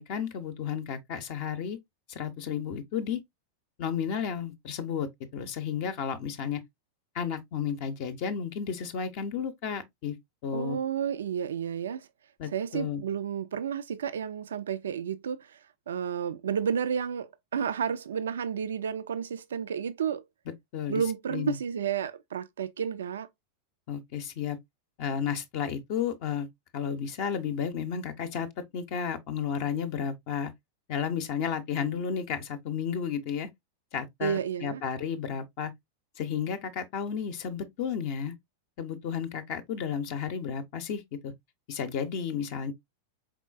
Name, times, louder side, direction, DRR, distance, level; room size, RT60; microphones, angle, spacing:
voice 1, 0.0-1.8 2.1-3.2 3.8-6.6 7.1-10.1 10.4-10.8 12.4-13.0 20.5-21.0 21.3-21.6 23.9-24.6 25.0-26.5 26.7-30.5 30.9-33.5 33.9-35.7 36.2-38.4 38.8-41.3 41.7-42.7, left 7 dB, 45° left, 0.6 m, -32 dB
voice 2, 10.5-12.1 12.4-20.2 20.9-23.3 34.2-34.8, right 8 dB, 65° right, 0.3 m, -31 dB
4.8 x 3.7 x 2.3 m
figure-of-eight pair, 90°, 0 cm